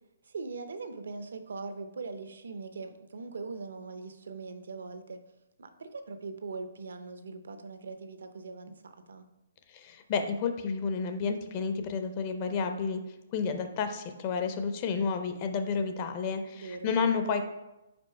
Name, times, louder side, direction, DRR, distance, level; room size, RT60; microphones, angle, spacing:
voice 1, 0.2-5.2 5.6-9.3 16.5-17.2, right 4 dB, 80° right, 9 dB, 0.7 m, -41 dB
voice 2, 9.7-13.0 13.3-17.4, left 5 dB, 25° left, 7 dB, 0.4 m, -31 dB
5.2 x 4.6 x 4.6 m, 0.95 s
hypercardioid pair, 175°, 0 cm